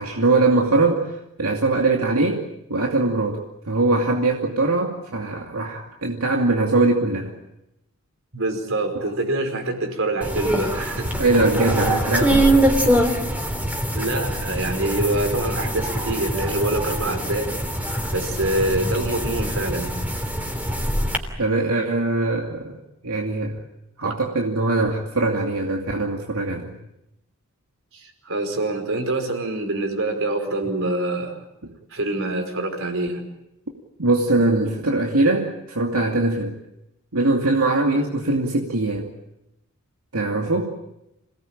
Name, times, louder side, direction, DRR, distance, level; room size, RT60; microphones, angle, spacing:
voice 1, 0.0-2.4 2.7-7.3 11.2-12.5 21.4-22.8 23.0-23.6 24.0-26.7 34.0-36.5 37.1-39.1 40.1-40.7, right 2 dB, 85° right, 0 dB, 2.6 m, -21 dB
voice 2, 8.3-11.1 13.9-17.5 18.1-20.0 24.0-24.1 27.9-31.4 31.9-33.2, right 2 dB, 65° right, 6 dB, 4.9 m, -25 dB
sound 1, 10.2-21.2, right 1 dB, 5° right, 3.2 m, -23 dB
27.0 x 18.5 x 8.8 m, 0.88 s
head